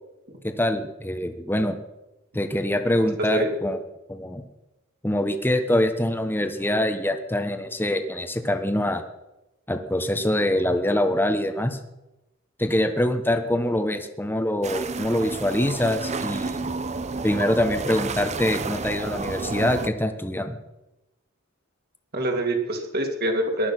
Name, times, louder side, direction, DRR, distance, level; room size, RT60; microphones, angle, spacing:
voice 1, 0.4-1.8 2.3-3.8 4.1-4.4 5.0-9.0 9.7-11.8 12.6-16.7 17.2-20.6, left 1 dB, 10° left, 6 dB, 1.2 m, -24 dB
voice 2, 3.0-3.5 22.1-23.7, right 1 dB, 50° right, 3 dB, 3.0 m, -25 dB
sound 1, 14.6-19.9, right 3 dB, 35° right, 0.8 m, -31 dB
19.0 x 12.0 x 6.0 m, 0.94 s
head